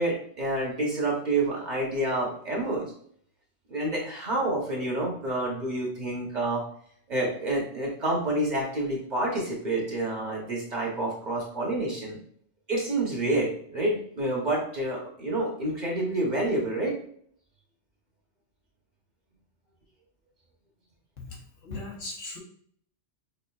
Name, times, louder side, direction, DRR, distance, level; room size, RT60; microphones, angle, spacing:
voice 1, 0.0-2.9 3.7-6.6 7.1-12.2 12.7-16.9, right 2 dB, 40° right, -2 dB, 1.0 m, -28 dB
voice 2, 21.2-22.4, left 2 dB, 85° left, -1 dB, 1.3 m, -39 dB
5.1 x 2.5 x 2.3 m, 0.63 s
omnidirectional pair, 1.2 m